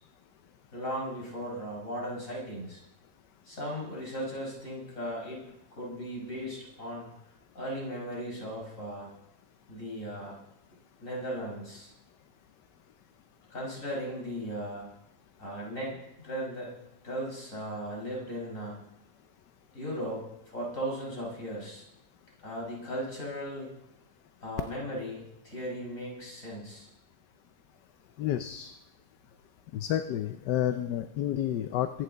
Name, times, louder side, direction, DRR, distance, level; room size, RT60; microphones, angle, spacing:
voice 1, 0.7-2.8 3.5-5.4 5.8-7.1 7.5-9.1 9.7-10.4 11.0-11.9 13.5-14.9 15.4-16.7 17.0-18.8 19.7-20.2 20.5-21.8 22.4-23.7 24.4-26.9, equal, 50° left, -3 dB, 5.7 m, -37 dB
voice 2, 28.2-28.7 29.7-31.9, left 11 dB, 80° left, 9 dB, 1.3 m, -30 dB
22.5 x 10.0 x 4.0 m, 0.84 s
omnidirectional pair, 1.8 m